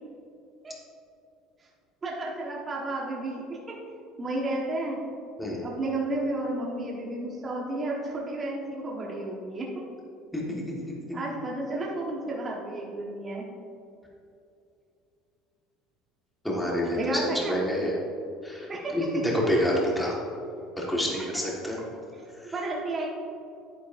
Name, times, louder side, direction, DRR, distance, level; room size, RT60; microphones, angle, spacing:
voice 1, 2.0-3.6 4.2-5.0 5.6-9.7 11.1-13.4 17.0-17.6 18.7-18.9 22.1-22.3 22.5-23.1, right 2 dB, 20° right, -4 dB, 1.3 m, -32 dB
voice 2, 16.4-17.2 17.5-17.9 18.4-20.1 20.8-21.8, equal, 5° left, -4 dB, 1.5 m, -27 dB
10.5 x 9.3 x 2.6 m, 2.6 s
cardioid pair, 150°, 0 cm